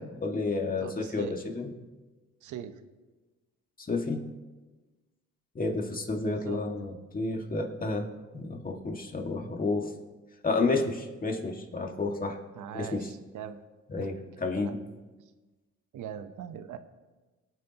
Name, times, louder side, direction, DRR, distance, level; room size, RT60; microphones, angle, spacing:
voice 1, 0.0-1.7 3.8-4.2 5.6-8.1 8.3-9.9 10.4-12.4 12.7-13.1 13.9-14.8, left 3 dB, 30° left, 2 dB, 2.0 m, -31 dB
voice 2, 0.8-1.4 2.4-2.8 6.2-6.6 12.5-13.6 14.0-14.1 14.6-14.7 15.9-16.8, right 9 dB, 80° right, 10 dB, 1.0 m, -41 dB
23.0 x 9.3 x 3.0 m, 1.2 s
cardioid pair, 90°, 30 cm